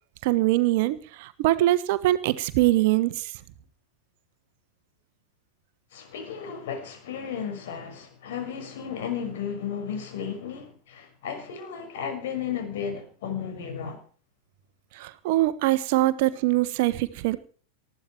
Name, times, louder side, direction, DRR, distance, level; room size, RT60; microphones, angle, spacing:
voice 1, 0.2-3.3 15.0-17.4, right 16 dB, 50° right, 1.3 m, -23 dB
voice 2, 5.9-14.0, left 7 dB, 55° left, 6.1 m, -34 dB
20.0 x 14.5 x 4.6 m
figure-of-eight pair, 90°, 0 cm